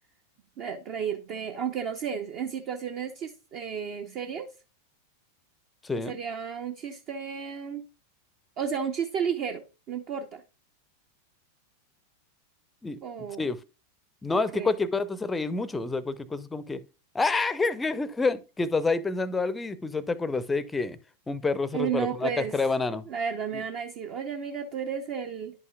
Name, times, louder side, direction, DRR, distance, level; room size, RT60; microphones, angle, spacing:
voice 1, 0.6-4.5 6.1-7.8 8.6-10.4 13.0-13.5 14.3-14.7 21.7-22.5 23.1-25.5, right 7 dB, 40° right, 0.6 m, -33 dB
voice 2, 5.8-6.2 12.8-13.0 13.4-13.6 14.2-16.8 17.1-21.0 21.3-23.1 23.5-23.6, left 3 dB, 10° left, 0.5 m, -28 dB
10.5 x 5.6 x 2.3 m
figure-of-eight pair, 90°, 0 cm